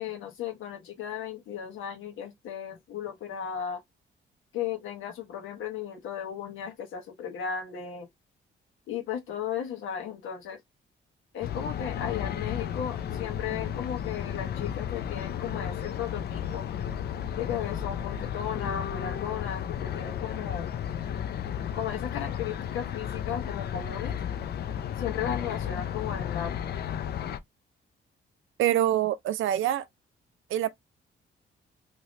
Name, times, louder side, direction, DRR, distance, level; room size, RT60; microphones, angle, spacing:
voice 1, 0.0-3.8 4.5-8.1 8.9-10.6 11.3-16.6 17.4-20.7 21.7-24.1 25.0-26.7, left 8 dB, 85° left, 1.2 m, -35 dB
sound 1, 11.4-27.4, left 9 dB, 55° left, 0.4 m, -33 dB
voice 2, 28.6-29.8 30.5-30.7, right 12 dB, 80° right, 0.5 m, -25 dB
3.1 x 2.9 x 2.6 m
cardioid pair, 125°, 20 cm